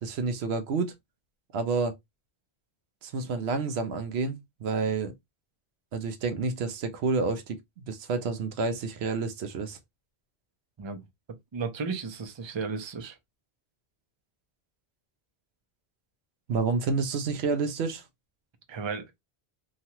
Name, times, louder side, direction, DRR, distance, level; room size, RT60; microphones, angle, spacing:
voice 1, 0.0-0.9 1.5-2.0 3.0-5.1 5.9-9.8 16.5-18.0, right 4 dB, 80° right, 0.9 m, -29 dB
voice 2, 11.5-13.2 18.7-19.1, right 5 dB, 35° right, 0.5 m, -34 dB
3.0 x 2.4 x 2.7 m
omnidirectional pair, 1.1 m